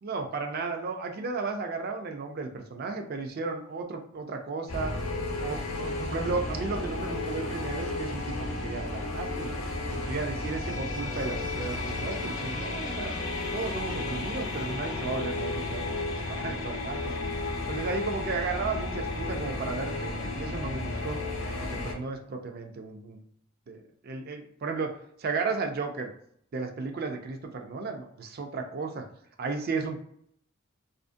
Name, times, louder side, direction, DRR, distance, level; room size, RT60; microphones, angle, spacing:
voice 1, 0.0-5.0 5.4-9.6 9.9-13.1 13.5-17.1 17.7-21.2 21.6-23.2 23.7-26.1 26.5-29.1 29.4-30.0, right 4 dB, 45° right, 4 dB, 0.4 m, -34 dB
sound 1, 4.7-21.9, left 2 dB, 70° left, 0.7 m, -33 dB
2.5 x 2.4 x 2.5 m, 0.68 s
head